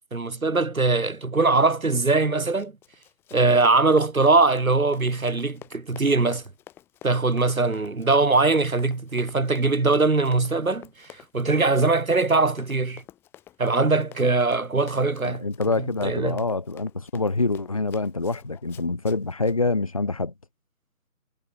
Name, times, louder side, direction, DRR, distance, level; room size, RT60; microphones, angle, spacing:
voice 1, 0.1-2.7 3.3-6.4 7.0-11.1 11.3-13.0 13.6-15.4 15.8-16.4, right 3 dB, 65° right, 2.8 m, -21 dB
Run, 2.4-19.6, left 12 dB, 5° left, 4.4 m, -48 dB
voice 2, 15.2-20.3, left 3 dB, 25° left, 1.2 m, -26 dB
figure-of-eight pair, 165°, 44 cm